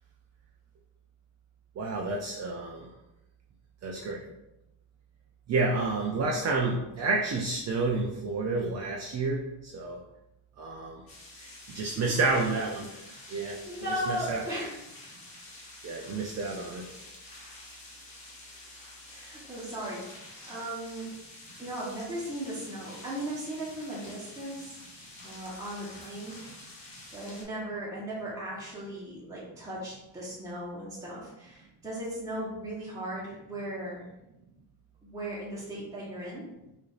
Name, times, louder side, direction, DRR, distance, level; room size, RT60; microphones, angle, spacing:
voice 1, 1.8-2.9 3.8-4.3 5.5-10.0 10.6-11.0 11.3-13.6 14.1-14.4 15.8-16.9, right 3 dB, 40° right, 0 dB, 0.4 m, -30 dB
sound 1, 11.1-27.4, left 2 dB, 50° left, 1.3 m, -48 dB
voice 2, 11.9-12.5 13.7-14.8 19.1-21.1 21.6-24.7 25.2-26.4 27.1-34.0 35.0-36.5, right 1 dB, 5° right, -8 dB, 1.1 m, -37 dB
4.7 x 2.7 x 2.5 m, 0.91 s
cardioid pair, 125°, 44 cm